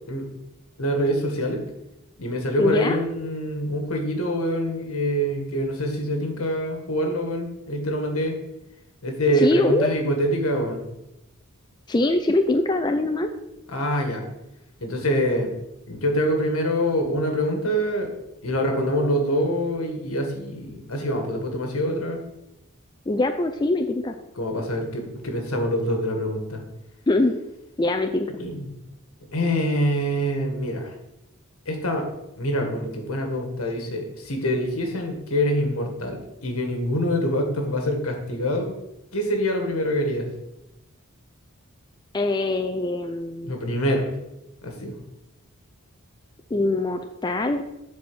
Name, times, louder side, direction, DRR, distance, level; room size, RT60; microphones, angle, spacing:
voice 1, 0.8-1.6 2.2-8.3 9.0-10.8 13.7-14.2 14.8-15.5 15.9-18.1 18.4-22.2 24.4-26.6 28.4-28.7 29.3-30.9 31.6-32.1 32.4-38.8 39.1-40.3 43.4-44.1 44.6-44.9, equal, 75° left, 3 dB, 1.7 m, -25 dB
voice 2, 2.6-3.0 9.4-9.9 11.9-13.3 23.1-24.1 27.1-27.3 27.8-28.3 42.1-43.5 46.5-47.6, left 2 dB, 20° left, 6 dB, 0.4 m, -23 dB
7.4 x 4.3 x 6.2 m, 0.90 s
head